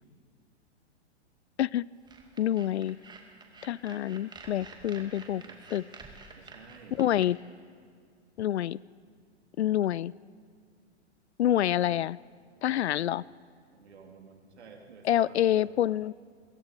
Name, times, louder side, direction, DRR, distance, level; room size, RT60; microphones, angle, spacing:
sound 1, 2.1-7.3, right 4 dB, 10° right, 2.3 m, -49 dB
voice 1, 2.4-3.0 3.6-5.4 5.7-5.8 7.0-7.4 8.4-8.8 9.6-10.1 11.4-12.2 12.6-13.2 15.0-16.1, left 12 dB, 70° left, 24 dB, 0.5 m, -27 dB
voice 2, 4.8-6.0 6.3-7.0 11.4-11.8 12.8-13.1 13.7-15.8, right 5 dB, 70° right, 2 dB, 3.7 m, -53 dB
28.0 x 22.5 x 5.2 m, 2.1 s
figure-of-eight pair, 105°, 35 cm